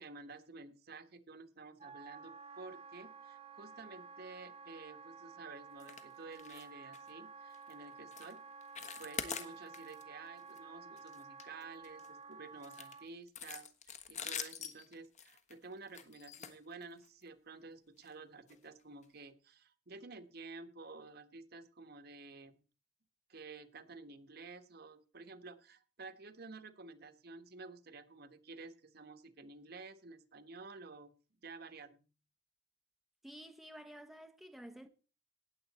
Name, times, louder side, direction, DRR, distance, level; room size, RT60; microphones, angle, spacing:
voice 1, 0.0-8.4 9.0-22.6 23.3-31.1 31.4-32.0, right 3 dB, 55° right, 1.3 m, -52 dB
Wind instrument woodwind instrument, 1.8-13.1, right 5 dB, 35° right, 1.2 m, -52 dB
sound 1, 5.8-6.1 6.3-6.7 6.9-7.1 7.5-7.7 8.1-8.3 8.6-10.0 10.4-10.6 11.0-12.1 12.6-17.2 18.0-18.1 18.5-18.6 19.0-19.1, left 7 dB, 40° left, 1.3 m, -45 dB
voice 2, 33.2-34.9, equal, ahead, 0.8 m, -51 dB
18.5 x 7.8 x 4.2 m
head